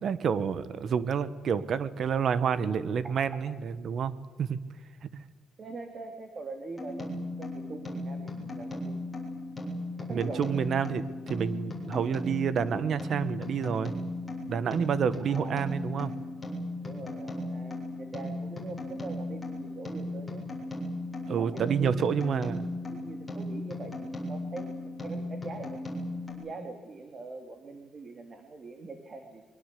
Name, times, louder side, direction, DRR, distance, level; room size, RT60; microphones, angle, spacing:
voice 1, 0.0-4.1 4.4-4.6 10.1-13.9 14.4-16.1 21.3-22.6, right 7 dB, 55° right, 15 dB, 1.3 m, -29 dB
voice 2, 5.6-9.0 10.0-10.6 15.3-15.7 16.8-20.4 21.4-24.7 25.0-25.8 26.3-29.4, right 3 dB, 35° right, 6 dB, 2.7 m, -43 dB
sound 1, 6.8-26.3, left 1 dB, 10° left, 7.6 m, -37 dB
24.0 x 23.5 x 8.5 m, 1.4 s
cardioid pair, 140°, 0 cm